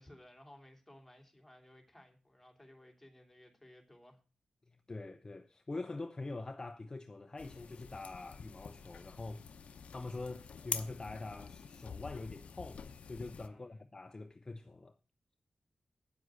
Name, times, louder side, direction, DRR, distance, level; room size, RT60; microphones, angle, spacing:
voice 1, 0.0-4.2 13.5-13.9, left 1 dB, 5° left, 3.0 m, -58 dB
voice 2, 4.7-9.4 9.9-15.0, left 2 dB, 30° left, 0.7 m, -44 dB
sound 1, 7.4-13.5, left 6 dB, 75° left, 0.8 m, -46 dB
9.4 x 7.7 x 6.3 m
wide cardioid pair, 90°, 2 cm